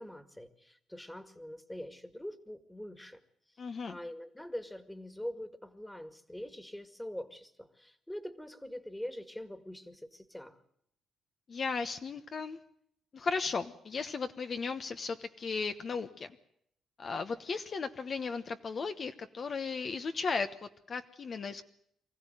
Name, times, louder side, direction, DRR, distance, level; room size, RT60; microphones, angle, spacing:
voice 1, 0.0-3.2 3.9-10.6, left 1 dB, 5° left, 11 dB, 2.0 m, -43 dB
voice 2, 3.6-4.0 11.5-12.6 13.1-16.3 17.0-21.6, left 4 dB, 45° left, 8 dB, 1.1 m, -36 dB
24.5 x 15.0 x 9.3 m, 0.73 s
cardioid pair, 90°, 0 cm